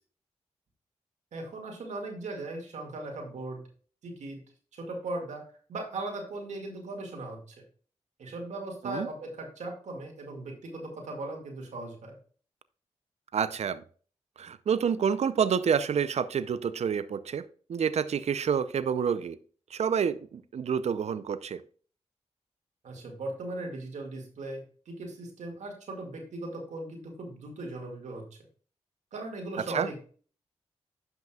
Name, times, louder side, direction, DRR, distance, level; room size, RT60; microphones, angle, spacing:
voice 1, 1.3-3.6 4.0-4.4 4.7-7.6 8.2-12.2 22.8-28.3 29.1-30.0, right 2 dB, 85° right, 2.0 m, -38 dB
voice 2, 13.3-13.8 14.4-17.4 17.7-19.4 19.7-21.6 29.7-29.9, right 7 dB, 65° right, 0.5 m, -28 dB
10.5 x 5.9 x 2.3 m
cardioid pair, 50°, 12 cm